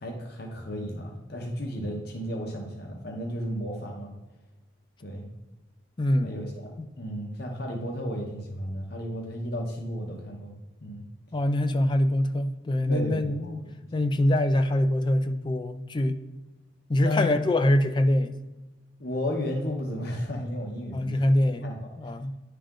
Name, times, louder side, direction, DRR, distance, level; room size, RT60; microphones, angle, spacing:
voice 1, 0.0-4.1 5.0-5.3 6.2-10.5 10.8-11.0 12.9-13.6 17.0-17.3 19.0-21.2 21.6-21.9, left 1 dB, 50° left, 0.9 m, -33 dB
voice 2, 6.0-6.3 6.8-6.9 11.3-13.6 13.9-16.2 16.9-18.3 20.9-22.4, left 1 dB, 25° left, 0.3 m, -24 dB
10.0 x 3.4 x 3.7 m
head